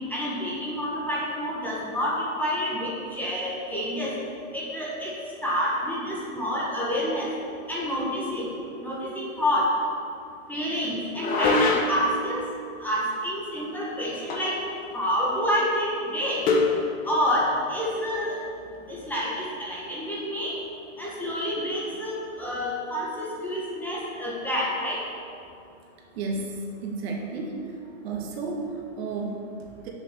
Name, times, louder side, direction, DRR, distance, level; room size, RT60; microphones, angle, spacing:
voice 1, 0.1-4.1 4.5-5.1 5.4-7.3 7.7-8.5 8.8-9.7 10.5-12.4 12.8-14.5 14.9-16.4 17.0-18.4 18.9-20.5 21.0-25.0, equal, 5° left, -6 dB, 1.4 m, -28 dB
sound 1, 11.1-12.1 14.3-14.7 14.9-15.0 16.5-16.8, left 3 dB, 20° left, 1.1 m, -23 dB
voice 2, 26.2-27.7 28.0-29.9, right 3 dB, 50° right, 1 dB, 1.7 m, -32 dB
7.5 x 7.0 x 6.7 m, 2.5 s
hypercardioid pair, 145°, 40 cm